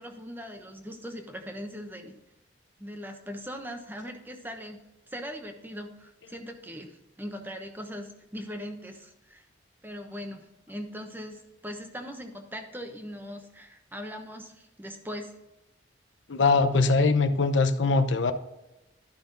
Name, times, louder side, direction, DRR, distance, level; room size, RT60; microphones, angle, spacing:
voice 1, 0.0-2.2 2.8-4.8 5.1-9.4 9.8-15.3, equal, 10° right, 5 dB, 1.0 m, -40 dB
voice 2, 16.3-18.3, left 3 dB, 75° left, 9 dB, 0.8 m, -22 dB
12.0 x 5.7 x 3.9 m, 0.97 s
head